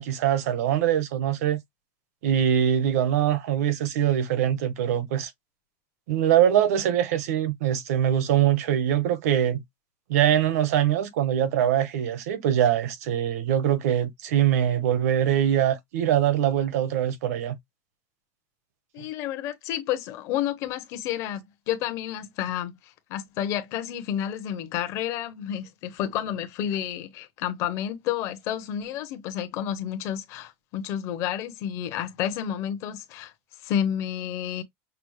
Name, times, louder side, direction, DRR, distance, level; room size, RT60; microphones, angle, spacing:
voice 1, 0.0-1.6 2.2-5.3 6.1-9.6 10.1-17.6, right 10 dB, 90° right, 1.0 m, -23 dB
voice 2, 18.9-33.3 33.6-34.6, left 10 dB, 40° left, 0.7 m, -30 dB
5.9 x 2.0 x 3.1 m
supercardioid pair, 175°, 8 cm